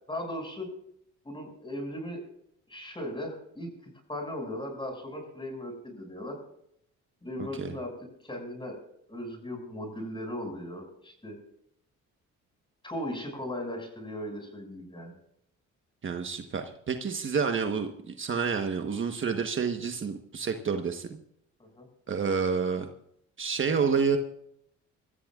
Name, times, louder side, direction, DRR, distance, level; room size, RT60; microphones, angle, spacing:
voice 1, 0.1-0.7 1.2-2.2 2.7-6.4 7.2-7.9 8.2-8.8 9.1-11.4 12.8-15.1 21.6-21.9, left 1 dB, 15° left, 2 dB, 6.2 m, -37 dB
voice 2, 16.0-21.2 22.1-22.8 23.4-24.2, right 6 dB, 40° right, 5 dB, 1.3 m, -29 dB
25.0 x 15.0 x 2.5 m, 0.74 s
cardioid pair, 90°, 30 cm